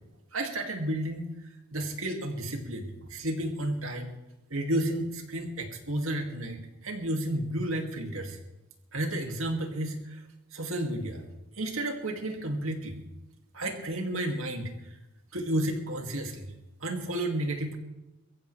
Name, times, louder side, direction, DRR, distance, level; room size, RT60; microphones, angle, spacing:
voice 1, 0.3-1.3 1.7-4.1 4.5-8.4 8.9-10.2 10.5-11.2 11.6-13.0 13.5-14.7 15.3-16.5 16.8-17.8, right 1 dB, 70° right, 3 dB, 2.5 m, -32 dB
22.5 x 15.0 x 3.4 m, 0.98 s
head